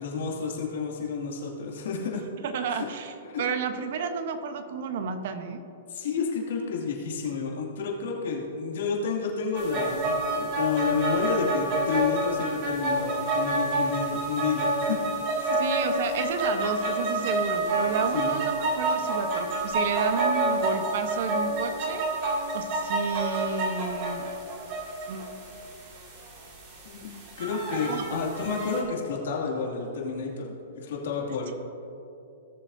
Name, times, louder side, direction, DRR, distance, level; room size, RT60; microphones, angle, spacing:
voice 1, 0.0-2.2 2.7-2.9 3.2-3.4 5.9-15.0 15.4-15.6 18.1-18.4 26.8-27.1 27.4-31.6, left 5 dB, 70° left, -1 dB, 2.4 m, -30 dB
voice 2, 2.4-5.6 15.6-22.1 22.5-24.3 25.1-26.0 27.9-28.0, right 6 dB, 60° right, 8 dB, 1.0 m, -31 dB
sound 1, 9.5-28.8, right 1 dB, 40° right, 2.4 m, -28 dB
17.5 x 7.2 x 2.7 m, 2.7 s
hypercardioid pair, 140°, 0 cm